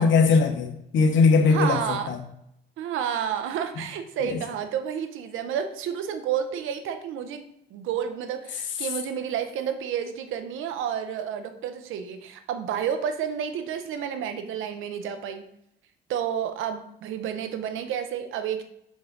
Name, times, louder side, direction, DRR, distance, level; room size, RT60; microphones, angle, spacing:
voice 1, 0.0-2.2 4.2-4.4, left 4 dB, 70° left, 7 dB, 1.0 m, -20 dB
voice 2, 1.5-2.1 2.8-15.5 16.1-18.6, right 8 dB, 85° right, 9 dB, 0.8 m, -30 dB
6.2 x 5.3 x 3.9 m, 0.76 s
cardioid pair, 90°, 20 cm